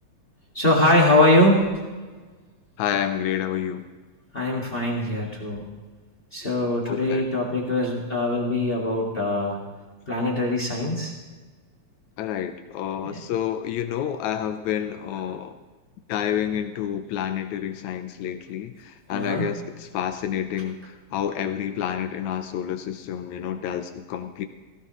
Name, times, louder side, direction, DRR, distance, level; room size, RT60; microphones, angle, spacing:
voice 1, 0.5-1.7 4.3-5.6 6.3-9.6 10.1-11.1 13.0-13.2 19.1-19.5, left 1 dB, 25° left, -1 dB, 1.5 m, -22 dB
voice 2, 2.8-3.8 6.9-7.2 12.2-15.5 16.1-24.5, left 9 dB, 80° left, 8 dB, 2.0 m, -29 dB
17.0 x 16.0 x 3.1 m, 1.3 s
omnidirectional pair, 3.4 m